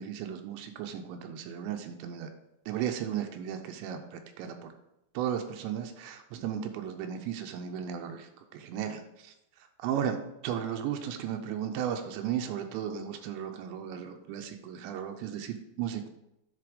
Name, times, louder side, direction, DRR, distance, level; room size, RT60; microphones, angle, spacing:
voice 1, 0.0-2.3 2.7-4.7 5.1-10.2 10.4-16.1, right 9 dB, 85° right, 5 dB, 3.0 m, -35 dB
10.0 x 4.2 x 5.1 m, 0.86 s
omnidirectional pair, 5.0 m